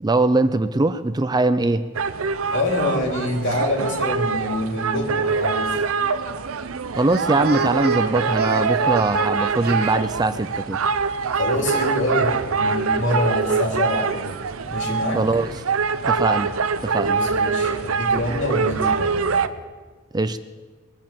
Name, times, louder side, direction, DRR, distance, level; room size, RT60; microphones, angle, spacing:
voice 1, 0.0-1.8 6.9-10.8 15.1-15.6 16.1-16.5 16.8-17.2 20.1-20.4, right 2 dB, 20° right, 12 dB, 0.4 m, -21 dB
sound 1, 2.0-19.5, right 5 dB, 90° right, 0.7 m, -24 dB
voice 2, 2.5-5.7 11.3-14.3 14.7-15.2 17.0-19.3, left 1 dB, 60° left, 1 dB, 2.9 m, -25 dB
Speech, 5.3-5.9 6.9-10.0 11.7-13.4 13.7-13.8 14.3-15.7, right 5 dB, 50° right, 1.2 m, -36 dB
21.5 x 7.5 x 7.5 m, 1.4 s
head